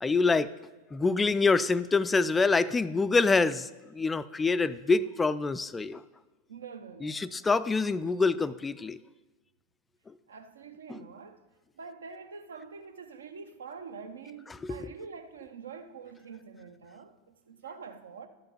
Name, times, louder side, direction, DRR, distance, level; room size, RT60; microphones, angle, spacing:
voice 1, 0.0-0.5 0.9-6.0 7.0-9.0 10.9-11.0 14.6-14.9, left 4 dB, 15° left, 0.3 m, -26 dB
voice 2, 6.5-7.5 10.3-11.5 11.8-18.3, right 5 dB, 65° right, 0.8 m, -45 dB
12.0 x 5.7 x 6.6 m
figure-of-eight pair, 90°, 0 cm